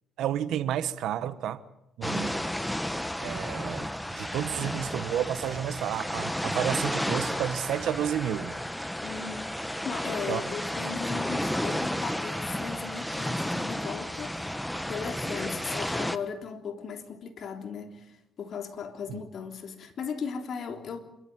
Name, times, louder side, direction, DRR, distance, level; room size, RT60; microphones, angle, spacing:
voice 1, 0.2-1.6 2.0-2.4 3.2-3.9 4.2-8.5 10.3-10.4 19.1-19.2, right 10 dB, 80° right, 1.3 m, -31 dB
sound 1, 2.0-16.2, equal, 5° left, 1.2 m, -32 dB
voice 2, 9.0-9.5 9.8-14.6 14.9-21.0, left 6 dB, 60° left, 3.4 m, -37 dB
27.5 x 13.5 x 9.2 m
cardioid pair, 90°, 0 cm